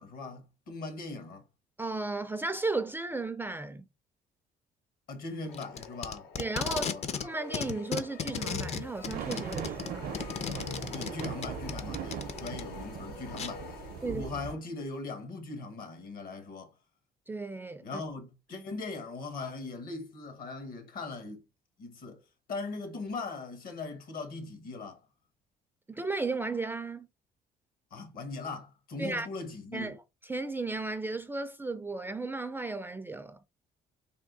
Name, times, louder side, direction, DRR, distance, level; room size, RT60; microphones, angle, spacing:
voice 1, 0.0-1.4 5.1-6.3 6.6-7.0 10.9-16.7 17.8-21.4 21.8-22.2 22.5-25.0 27.9-29.9, left 3 dB, 60° left, 1.3 m, -40 dB
voice 2, 1.8-3.8 6.4-6.9 7.2-10.1 14.0-14.2 17.3-18.0 25.9-27.1 29.0-29.3 29.7-30.0 30.3-33.4, right 3 dB, 10° right, 0.3 m, -34 dB
sound 1, 5.4-14.5, left 4 dB, 85° left, 0.9 m, -46 dB
Packing tape duct tape, 5.5-7.3 7.5-12.6 13.4-13.5, left 6 dB, 40° left, 0.5 m, -35 dB
sound 2, 8.3-14.5, right 9 dB, 60° right, 0.5 m, -40 dB
3.5 x 2.6 x 3.8 m
cardioid pair, 110°, 17 cm